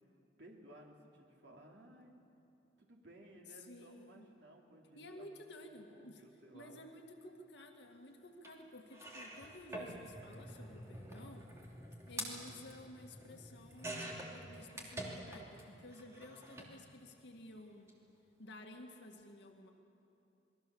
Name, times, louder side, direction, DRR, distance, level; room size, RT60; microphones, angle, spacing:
voice 1, 0.4-2.1 2.8-5.3 5.9-6.8 16.3-16.7, right 1 dB, 75° right, 0 dB, 3.0 m, -58 dB
voice 2, 3.5-4.3 5.0-11.5 12.1-17.9 18.4-19.7, left 1 dB, 75° left, 3 dB, 1.9 m, -54 dB
sound 1, 8.4-8.5 8.9-15.6 15.9-16.7 17.7-17.9 18.2-18.3, right 1 dB, 15° right, 2.8 m, -47 dB
28.0 x 21.0 x 7.0 m, 2.7 s
head